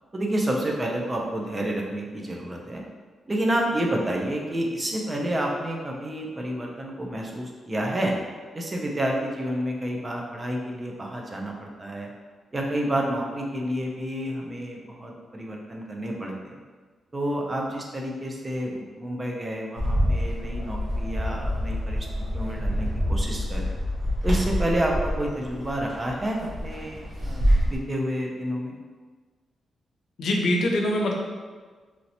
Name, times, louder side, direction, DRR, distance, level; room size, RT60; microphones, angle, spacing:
voice 1, 0.1-2.8 3.3-8.1 8.5-12.1 12.5-16.5 17.1-22.1 22.3-23.7 24.2-28.8, right 1 dB, 20° right, 0 dB, 0.4 m, -29 dB
Bird, 19.8-27.8, equal, 65° right, 0.9 m, -26 dB
voice 2, 30.2-31.1, left 1 dB, 65° left, 0 dB, 0.5 m, -23 dB
3.0 x 2.7 x 2.7 m, 1.5 s
wide cardioid pair, 170°, 0 cm